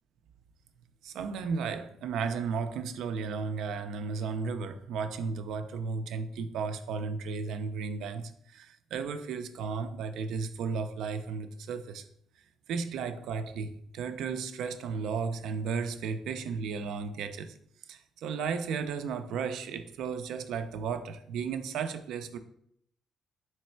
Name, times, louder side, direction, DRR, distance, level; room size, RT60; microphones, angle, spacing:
voice 1, 1.0-12.1 12.7-17.6 17.9-22.4, right 5 dB, 85° right, 0.4 m, -34 dB
3.2 x 3.1 x 4.4 m
cardioid pair, 90°, 0 cm